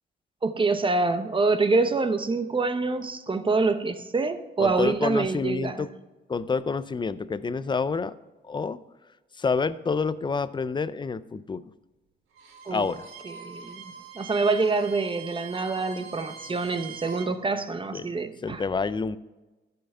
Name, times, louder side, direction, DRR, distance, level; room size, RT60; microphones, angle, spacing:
voice 1, 0.4-5.9 12.7-12.9 13.2-18.6, right 3 dB, 25° right, 10 dB, 0.8 m, -26 dB
voice 2, 4.6-5.9 6.3-8.1 8.4-8.8 9.4-11.7 12.7-13.1 17.9-18.0 18.4-19.2, left 4 dB, 25° left, 16 dB, 0.4 m, -28 dB
Bowed string instrument, 12.3-17.3, right 6 dB, 90° right, 1.4 m, -43 dB
12.5 x 5.7 x 5.5 m, 1.1 s
cardioid pair, 90°, 20 cm